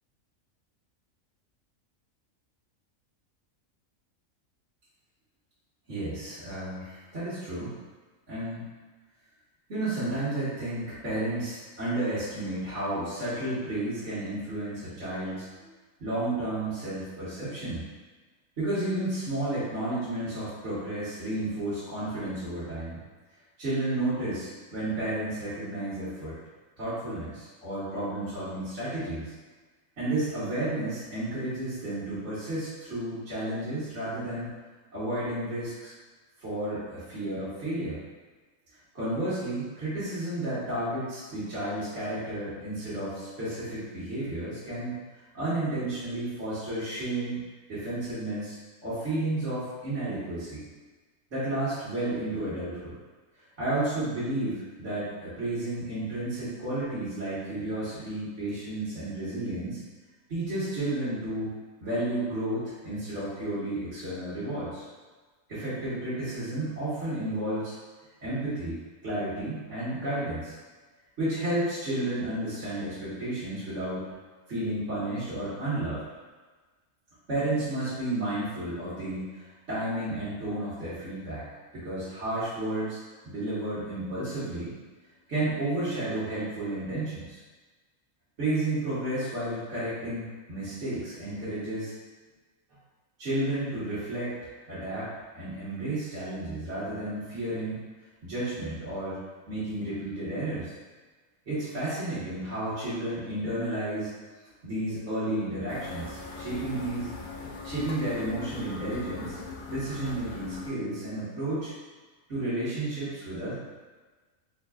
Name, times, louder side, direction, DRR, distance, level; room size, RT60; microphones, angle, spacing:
voice 1, 5.9-7.7 8.3-8.6 9.7-15.7 16.0-17.8 18.6-23.0 23.6-26.4 26.8-29.3 30.0-34.5 34.9-35.9 36.4-38.0 38.9-45.0 45.3-47.4 47.7-48.6 48.8-50.6 51.3-52.9 53.6-59.8 60.3-61.5 61.8-64.8 65.5-67.7 68.2-68.8 69.0-70.5 71.2-74.1 74.5-76.1 77.3-81.4 81.7-84.7 85.3-87.4 88.4-91.9 93.2-97.8 98.2-99.2 99.5-100.7 101.5-104.1 104.6-107.1 107.6-109.4 109.7-111.7 112.3-113.5, right 1 dB, 55° right, -15 dB, 1.7 m, -32 dB
sound 1, 105.7-110.7, left 4 dB, 60° left, 0.5 m, -40 dB
4.2 x 4.0 x 2.4 m, 1.3 s
omnidirectional pair, 1.4 m